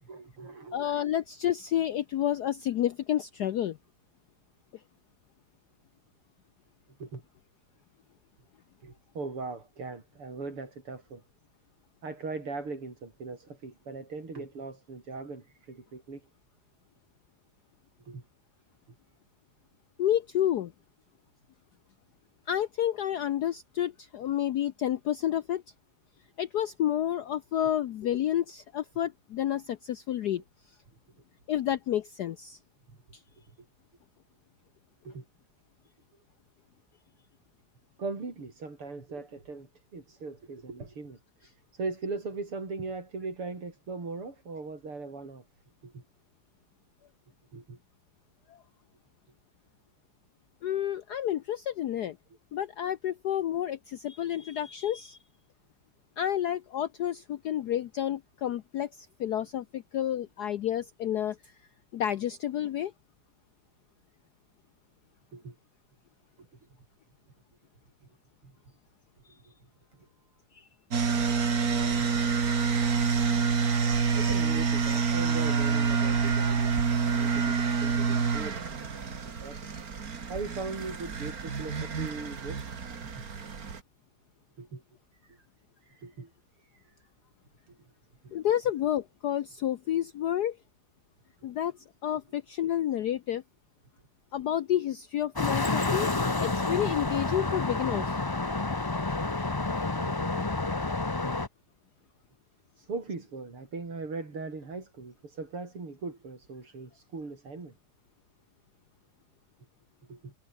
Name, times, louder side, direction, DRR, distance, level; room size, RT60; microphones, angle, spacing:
voice 1, 0.0-0.9 7.0-7.2 8.8-11.2 12.0-16.3 18.1-18.2 35.0-35.2 38.0-41.2 41.5-45.4 45.8-46.0 47.5-47.8 65.3-65.6 66.4-66.5 68.0-68.1 68.4-68.5 69.9-70.1 71.8-72.1 74.1-79.8 80.3-83.1 84.6-84.8 85.2-85.5 85.8-86.3 86.6-86.9 87.7-87.9 88.2-88.4 91.4-91.5 100.0-100.7 102.8-107.7 110.1-110.3, right 3 dB, 85° right, 6.0 m, -40 dB
voice 2, 0.7-3.8 20.0-20.7 22.5-25.6 26.4-30.4 31.5-32.6 48.5-48.6 50.6-52.2 52.5-55.2 56.2-61.5 61.9-62.9 70.5-70.7 88.3-90.6 91.4-91.7 92.0-93.4 94.3-96.1 96.4-98.2, left 11 dB, 65° left, 1.0 m, -30 dB
sound 1, 70.9-83.8, right 5 dB, 45° right, 2.4 m, -27 dB
sound 2, 95.4-101.5, left 3 dB, 35° left, 0.3 m, -29 dB
omnidirectional pair, 2.4 m